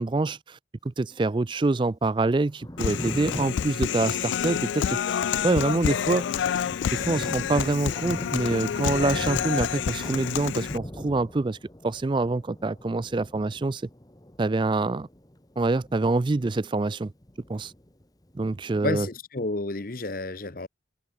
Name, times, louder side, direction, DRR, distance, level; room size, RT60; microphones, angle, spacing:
voice 1, 0.0-6.6 6.9-11.6 11.8-13.8 14.4-15.1 15.6-17.1 17.5-17.7 18.3-19.1, right 3 dB, 25° right, 0.3 m, -26 dB
Thunder, 2.4-16.8 17.1-18.3, equal, 20° left, 1.5 m, -41 dB
Human voice, 2.8-10.8, left 8 dB, 70° left, 0.3 m, -28 dB
voice 2, 18.8-20.7, left 2 dB, 45° left, 1.1 m, -30 dB
head